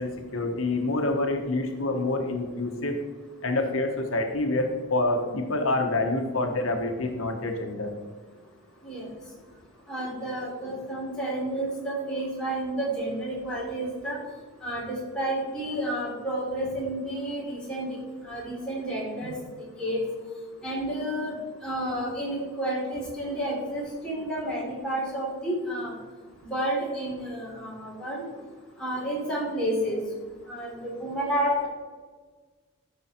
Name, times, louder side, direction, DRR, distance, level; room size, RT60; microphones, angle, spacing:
voice 1, 0.0-3.0 3.4-7.9, left 2 dB, 80° left, 4 dB, 1.2 m, -27 dB
voice 2, 9.9-14.2 14.6-18.0 18.2-19.3 19.8-20.0 20.6-21.3 21.6-25.9 26.4-28.2 28.8-30.0 30.5-31.7, right 1 dB, 5° left, -6 dB, 3.5 m, -30 dB
13.5 x 6.2 x 4.4 m, 1.4 s
head